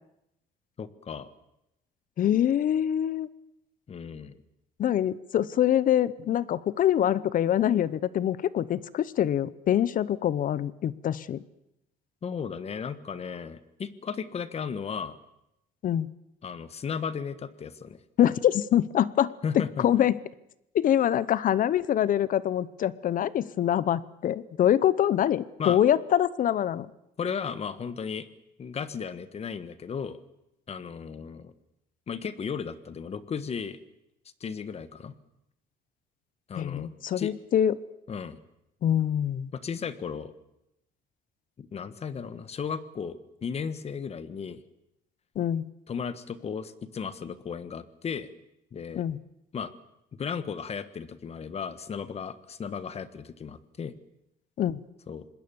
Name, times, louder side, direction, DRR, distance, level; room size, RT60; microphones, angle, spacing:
voice 1, 0.8-1.3 3.9-4.4 12.2-15.2 16.4-18.0 19.4-19.9 25.6-25.8 27.2-28.3 28.6-30.2 30.7-31.5 32.1-33.8 34.4-35.1 36.5-36.9 37.2-37.3 38.1-38.4 39.5-40.3 41.6-44.6 45.9-48.3 48.7-49.0 49.5-49.7 50.1-53.9 55.1-55.3, left 6 dB, 40° left, 14 dB, 1.5 m, -35 dB
voice 2, 2.2-3.3 4.8-11.4 15.8-16.1 18.2-20.1 20.7-26.9 36.6-37.8 38.8-39.5 45.4-45.7 49.0-49.2 54.6-54.8, left 10 dB, 55° left, 19 dB, 0.8 m, -25 dB
26.0 x 20.5 x 7.1 m, 0.84 s
cardioid pair, 110°, 17 cm